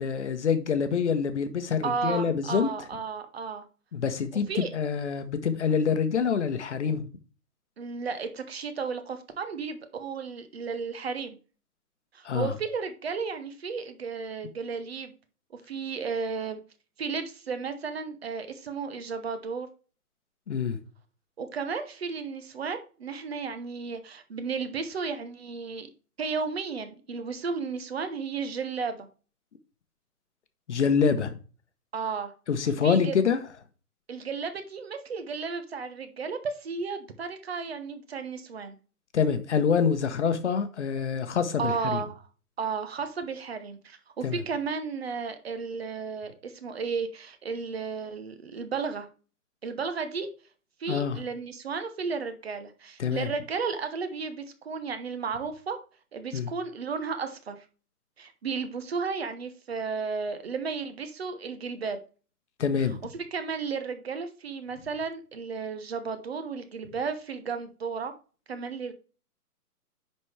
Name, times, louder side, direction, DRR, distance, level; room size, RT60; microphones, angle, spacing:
voice 1, 0.0-2.7 3.9-7.1 12.2-12.5 20.5-20.8 30.7-31.4 32.5-33.4 39.1-42.0 44.2-44.4 50.9-51.2 53.0-53.3 56.3-56.5 62.6-62.9, left 6 dB, 50° left, 1.0 m, -26 dB
voice 2, 1.8-3.7 4.5-4.7 7.8-11.4 12.1-15.1 15.5-16.6 17.0-19.7 21.4-25.9 26.2-29.1 31.9-32.3 32.8-33.1 34.1-38.8 41.6-42.2 42.6-49.1 49.6-50.3 50.8-55.8 56.1-57.7 58.2-62.0 63.1-68.1 68.5-68.9, right 5 dB, 40° right, 0.9 m, -33 dB
10.0 x 4.2 x 3.3 m
hypercardioid pair, 165°, 46 cm